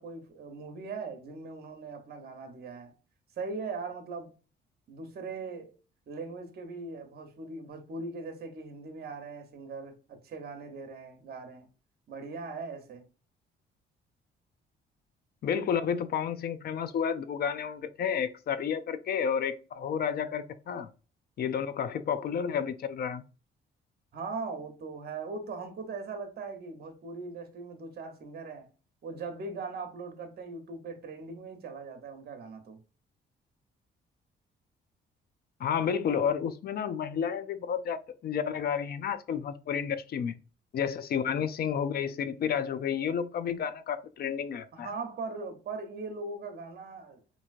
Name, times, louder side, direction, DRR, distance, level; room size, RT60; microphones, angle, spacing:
voice 1, 0.0-3.0 3.4-4.3 4.9-5.8 6.1-11.7 12.1-13.1 24.1-28.7 29.0-32.8 44.7-47.2, right 4 dB, 55° right, 0.8 m, -40 dB
voice 2, 15.4-20.9 21.4-23.2 35.6-40.3 40.7-44.9, left 7 dB, 50° left, 0.4 m, -31 dB
3.0 x 2.6 x 2.4 m
cardioid pair, 90°, 20 cm